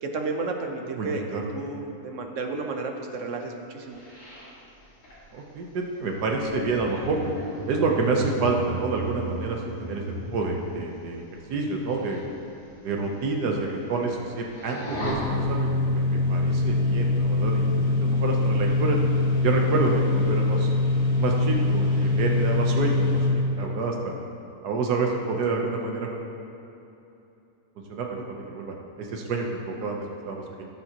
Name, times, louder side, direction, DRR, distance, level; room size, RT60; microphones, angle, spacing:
voice 1, 0.0-1.2 1.5-4.0, right 3 dB, 55° right, 3 dB, 1.1 m, -32 dB
voice 2, 0.9-1.5 5.3-7.2 7.7-12.2 12.8-17.7 18.0-19.0 19.4-20.7 21.2-23.3 23.6-24.1 24.6-26.1 27.9-29.9 30.3-30.7, right 3 dB, 85° right, 1 dB, 1.5 m, -28 dB
sound 1, 3.9-10.8 11.8-12.2 12.6-12.7 13.2-13.3 13.5-14.2 14.5-15.1, right 1 dB, 55° left, 2.6 m, -36 dB
sound 2, 15.0-23.3, left 2 dB, 70° left, 2.1 m, -23 dB
16.0 x 7.3 x 2.9 m, 2.8 s
omnidirectional pair, 1.7 m